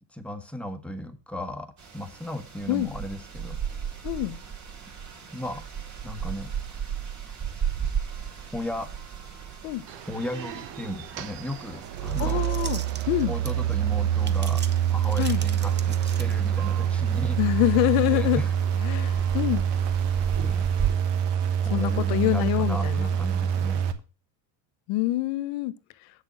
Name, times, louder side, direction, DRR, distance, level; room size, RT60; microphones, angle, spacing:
voice 1, 0.1-3.6 5.3-5.6 6.0-6.5 8.5-8.9 10.1-12.4 13.3-14.6 14.9-17.4 18.0-18.5 20.4-20.7 21.6-23.8, left 1 dB, 5° left, 1.2 m, -35 dB
sound 1, 1.8-20.9, right 8 dB, 40° right, 3.6 m, -36 dB
voice 2, 4.0-4.4 9.6-9.8 12.2-12.8 13.1-13.3 15.2-15.4 17.4-18.4 18.8-19.6 21.7-23.1 24.9-25.7, left 17 dB, 85° left, 0.9 m, -25 dB
sound 2, 9.9-23.9, right 9 dB, 70° right, 1.3 m, -26 dB
sound 3, 11.8-13.7 14.2-16.6, right 6 dB, 25° right, 0.8 m, -41 dB
8.1 x 6.7 x 6.2 m
cardioid pair, 130°, 44 cm